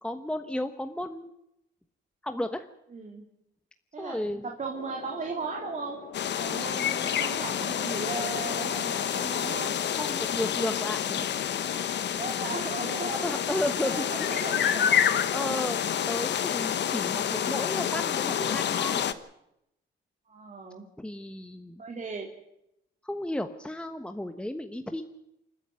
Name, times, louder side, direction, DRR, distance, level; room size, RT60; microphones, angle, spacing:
voice 1, 0.0-1.3 2.2-2.7 4.0-4.5 10.0-11.3 12.4-12.5 13.2-14.5 15.3-19.1 21.0-21.8 23.0-25.0, left 1 dB, 5° left, 8 dB, 1.1 m, -33 dB
voice 2, 2.9-3.2 3.9-6.0 6.4-9.8 12.2-13.3 13.8-15.2 20.3-20.8 21.8-22.3, right 4 dB, 40° right, 1 dB, 3.2 m, -37 dB
sound 1, 4.7-12.0, left 6 dB, 85° left, 3.0 m, -44 dB
sound 2, 6.1-19.1, left 9 dB, 60° left, 1.1 m, -28 dB
27.5 x 10.0 x 9.5 m, 0.82 s
cardioid pair, 90°, 20 cm